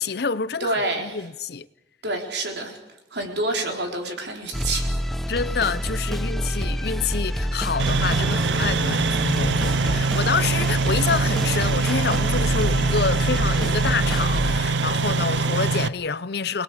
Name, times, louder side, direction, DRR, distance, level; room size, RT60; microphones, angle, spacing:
voice 1, 0.0-0.7 1.0-1.7 5.3-16.6, left 5 dB, 60° left, 0.7 m, -27 dB
voice 2, 0.6-1.2 2.0-2.8 3.1-4.9, right 2 dB, 65° right, 4.1 m, -27 dB
sound 1, 4.5-14.6, equal, ahead, 0.8 m, -27 dB
sound 2, 7.8-15.9, right 4 dB, 85° right, 0.7 m, -23 dB
30.0 x 19.5 x 5.0 m
head